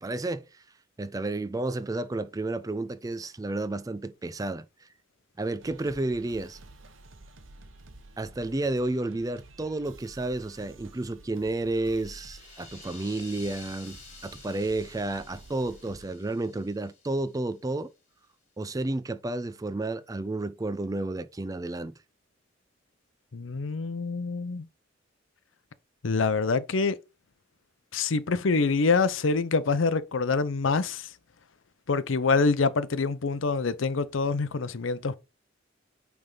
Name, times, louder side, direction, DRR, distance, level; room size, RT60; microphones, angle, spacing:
voice 1, 0.0-0.4 1.0-4.6 5.4-6.6 8.2-14.0 14.2-17.9 18.6-21.9, right 2 dB, 20° right, 0.4 m, -31 dB
sound 1, 5.6-16.1, right 2 dB, 90° right, 1.0 m, -51 dB
sound 2, 11.4-17.6, left 4 dB, 35° left, 2.2 m, -51 dB
voice 2, 23.3-24.7 26.0-27.0 27.9-31.1 31.9-35.1, left 4 dB, 85° left, 0.6 m, -26 dB
8.9 x 3.5 x 3.9 m
head